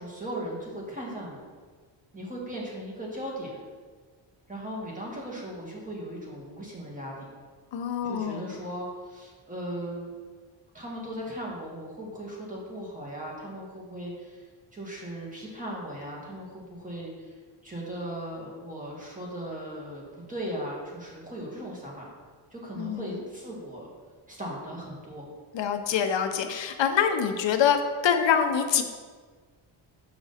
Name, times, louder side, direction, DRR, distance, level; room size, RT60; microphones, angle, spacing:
voice 1, 0.0-1.4 2.1-3.5 4.5-7.3 8.0-10.1 10.7-14.4 14.7-17.4 17.6-22.1 22.5-23.9 24.3-25.3, right 1 dB, 15° right, -3 dB, 1.8 m, -37 dB
voice 2, 7.7-8.6 22.8-23.2 25.5-28.8, left 8 dB, 70° left, 6 dB, 0.7 m, -25 dB
6.7 x 5.9 x 4.2 m, 1.5 s
wide cardioid pair, 135°, 46 cm